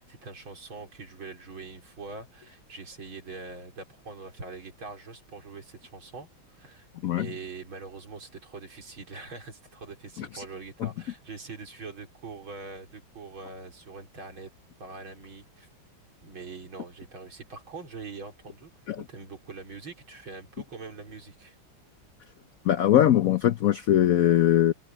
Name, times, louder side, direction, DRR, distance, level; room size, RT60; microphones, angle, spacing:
voice 1, 0.0-14.5 14.8-15.7 16.2-18.7 19.0-21.6, right 4 dB, 85° right, 5.0 m, -43 dB
voice 2, 22.7-24.7, left 11 dB, 80° left, 0.7 m, -21 dB
omnidirectional pair, 2.2 m